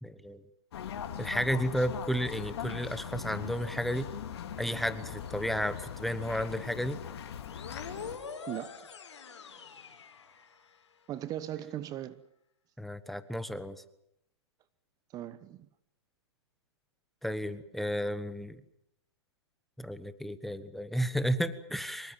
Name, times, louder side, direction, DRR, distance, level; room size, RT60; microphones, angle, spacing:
voice 1, 0.0-0.4 1.2-4.1 4.6-7.0 12.8-13.8 17.2-18.6 19.8-22.1, equal, ahead, 13 dB, 1.2 m, -32 dB
sound 1, 0.7-8.2, left 8 dB, 60° left, 3.6 m, -40 dB
sound 2, 7.4-10.9, left 6 dB, 75° left, 4.7 m, -45 dB
voice 2, 8.5-8.9 11.1-12.2 15.1-15.7, right 12 dB, 25° right, 15 dB, 1.0 m, -38 dB
25.0 x 23.0 x 7.3 m, 0.75 s
hypercardioid pair, 130°, 15 cm